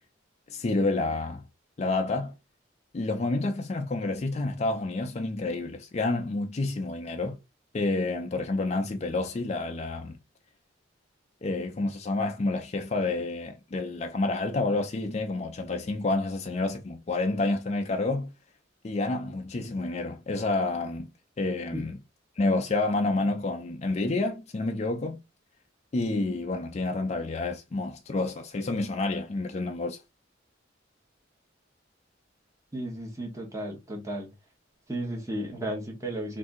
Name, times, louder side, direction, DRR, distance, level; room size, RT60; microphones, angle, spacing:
voice 1, 0.5-1.4 1.8-2.3 2.9-7.4 7.7-10.2 11.4-18.3 18.8-21.1 21.4-22.0 22.4-25.2 25.9-30.0, left 2 dB, 35° left, 0.4 m, -29 dB
voice 2, 32.7-34.3 34.9-36.4, right 1 dB, 15° right, 1.0 m, -34 dB
2.6 x 2.6 x 3.5 m
head